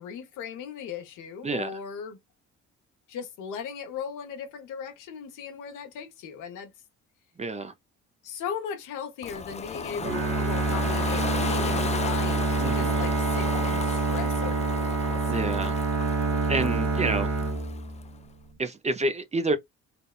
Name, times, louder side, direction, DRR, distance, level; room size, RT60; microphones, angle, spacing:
voice 1, 0.0-2.2 3.1-6.7 8.2-15.2, left 7 dB, 90° left, 1.0 m, -38 dB
voice 2, 7.4-7.7 12.6-13.0 15.3-15.8 16.5-17.3 18.6-19.6, right 2 dB, 20° right, 0.6 m, -28 dB
Ocean, 9.2-18.1, left 6 dB, 25° left, 0.4 m, -36 dB
Bowed string instrument, 10.0-18.2, right 3 dB, 60° right, 1.2 m, -27 dB
3.4 x 2.2 x 2.4 m
cardioid pair, 90°, 30 cm